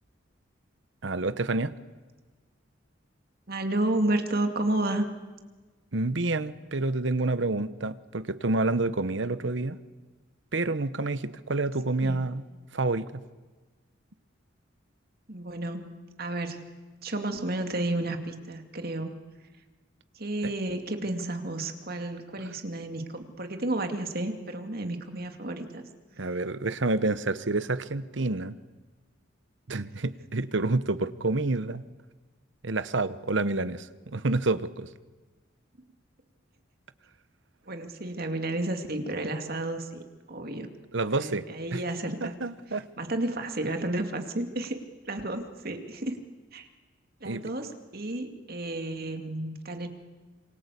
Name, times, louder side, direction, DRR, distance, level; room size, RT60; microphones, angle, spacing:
voice 1, 1.0-1.7 5.9-9.8 10.5-12.5 12.7-13.2 26.2-28.6 29.7-31.8 32.6-34.9 40.9-41.8 42.2-42.9 47.2-47.4, right 2 dB, 70° right, 14 dB, 1.1 m, -28 dB
voice 2, 3.5-5.1 12.0-12.3 15.3-15.9 16.2-16.6 17.0-19.2 20.1-25.8 37.7-40.0 40.3-40.7 41.1-42.3 43.0-44.8 45.0-46.2 46.5-46.7 47.2-49.9, right 1 dB, 50° right, 6 dB, 2.5 m, -31 dB
27.0 x 25.0 x 8.4 m, 1.3 s
head